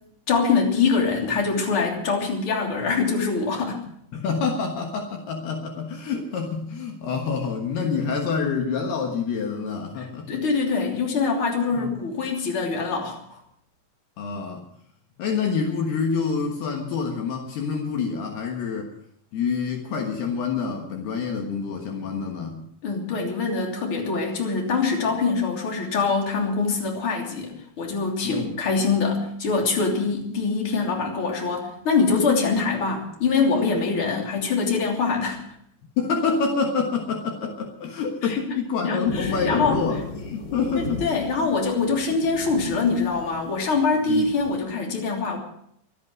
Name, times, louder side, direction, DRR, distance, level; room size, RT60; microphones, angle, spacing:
voice 1, 0.3-3.8 10.0-13.4 22.8-35.4 38.2-38.4 38.8-39.8 40.8-45.4, left 4 dB, 35° left, 0 dB, 3.4 m, -24 dB
voice 2, 4.1-10.3 11.7-11.9 14.2-14.6 15.2-18.9 19.3-22.6 28.2-28.6 36.0-41.0 44.1-44.3, left 5 dB, 70° left, 3 dB, 3.3 m, -27 dB
sound 1, 39.1-44.6, left 4 dB, 50° left, 4.6 m, -36 dB
24.5 x 8.5 x 6.2 m, 0.69 s
omnidirectional pair, 5.0 m